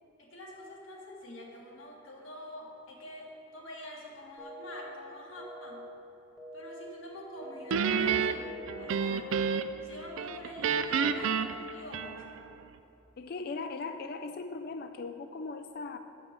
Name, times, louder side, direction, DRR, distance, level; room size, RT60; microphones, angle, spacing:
voice 1, 0.2-5.8 6.5-9.3 9.8-12.3, left 1 dB, 75° left, -2 dB, 1.7 m, -46 dB
sound 1, 4.4-4.9 5.4-5.9 6.4-6.9 7.4-7.9 8.4-8.9, equal, ahead, 1.2 m, -46 dB
Guitar, 7.7-9.9 10.2-12.5, right 6 dB, 75° right, 0.4 m, -30 dB
voice 2, 13.2-16.0, left 3 dB, 45° left, 7 dB, 0.3 m, -38 dB
8.5 x 5.8 x 6.7 m, 2.9 s
head